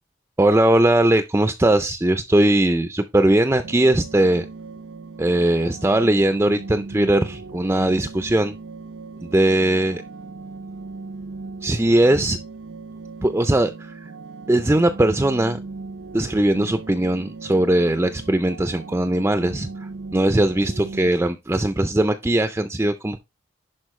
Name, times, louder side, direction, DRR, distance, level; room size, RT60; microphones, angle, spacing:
voice 1, 0.4-4.5 5.2-8.5 9.2-10.0 11.6-12.4 13.2-14.1 14.5-15.6 16.1-23.2, right 1 dB, 10° right, 0.4 m, -19 dB
sound 1, 3.6-21.1, right 3 dB, 75° right, 0.5 m, -37 dB
11.0 x 4.3 x 3.1 m
head